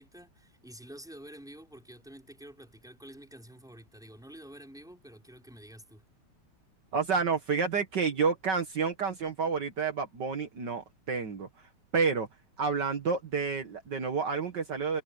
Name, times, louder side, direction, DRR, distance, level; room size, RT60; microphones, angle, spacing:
voice 1, 0.0-6.0, right 1 dB, ahead, 4.3 m, -49 dB
voice 2, 6.9-11.5 11.9-12.3 12.6-15.0, right 5 dB, 60° right, 2.2 m, -29 dB
omnidirectional pair, 2.1 m